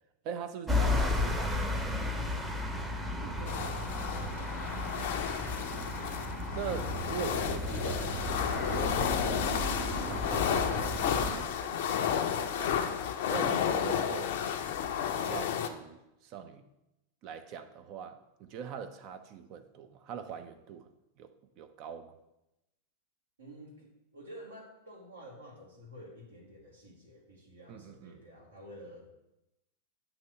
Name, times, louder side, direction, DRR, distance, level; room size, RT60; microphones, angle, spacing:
voice 1, 0.2-3.0 4.8-5.4 6.6-8.2 8.5-16.6 17.2-20.9 21.2-21.3 21.6-22.2 27.7-28.2, right 7 dB, 40° right, 0.4 m, -43 dB
sound 1, 0.7-11.4, left 2 dB, 10° right, 0.7 m, -34 dB
voice 2, 3.2-5.0 23.4-29.1, equal, 75° right, 1.5 m, -50 dB
sound 2, 3.5-15.7, left 8 dB, 55° left, 0.5 m, -32 dB
7.7 x 2.9 x 5.5 m
figure-of-eight pair, 90°, 0 cm